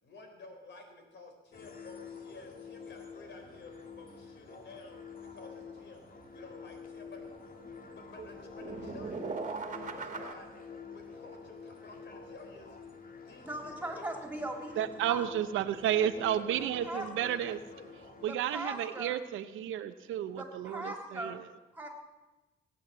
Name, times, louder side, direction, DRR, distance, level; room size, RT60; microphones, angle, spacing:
voice 1, 0.0-5.0 5.3-7.2 7.9-9.1 9.4-10.5 10.9-12.8 13.2-14.0 15.7-17.4 17.7-17.9, left 3 dB, 60° left, 4 dB, 4.2 m, -52 dB
sound 1, 1.5-18.3, left 5 dB, 45° left, 2.3 m, -48 dB
sound 2, 5.0-5.1 5.3-5.4 5.7-5.8 6.2-7.3 7.6-10.3, right 4 dB, 40° right, 1.9 m, -40 dB
voice 2, 13.4-15.3 16.8-17.4 18.2-19.2 20.4-21.4 21.7-21.9, right 1 dB, 10° right, 2 dB, 3.6 m, -40 dB
voice 3, 14.8-17.6 18.2-21.4, right 11 dB, 85° right, 11 dB, 0.8 m, -32 dB
18.0 x 9.2 x 7.6 m, 1.1 s
cardioid pair, 90°, 20 cm